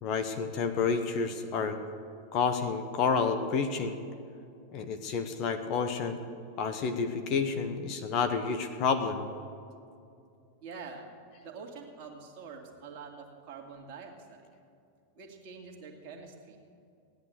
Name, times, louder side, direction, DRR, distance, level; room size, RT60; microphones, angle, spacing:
voice 1, 0.0-1.8 2.3-4.0 4.7-6.2 6.6-9.3, left 5 dB, 40° left, 9 dB, 1.0 m, -29 dB
voice 2, 10.6-11.1 11.4-14.4 15.1-16.6, right 5 dB, 40° right, 0 dB, 2.2 m, -46 dB
16.0 x 10.5 x 6.9 m, 2.4 s
figure-of-eight pair, 90°, 0 cm